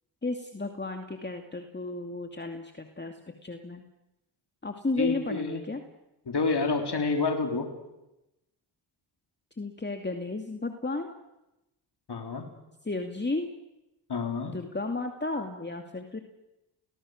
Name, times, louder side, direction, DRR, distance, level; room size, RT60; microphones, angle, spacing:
voice 1, 0.2-3.8 4.6-5.8 9.6-11.1 12.8-13.5 14.5-16.2, left 2 dB, 20° left, 5 dB, 2.4 m, -33 dB
voice 2, 5.0-5.6 6.3-7.7 12.1-12.4 14.1-14.6, left 4 dB, 50° left, 4 dB, 3.9 m, -28 dB
29.0 x 19.5 x 6.6 m, 0.95 s
supercardioid pair, 45°, 49 cm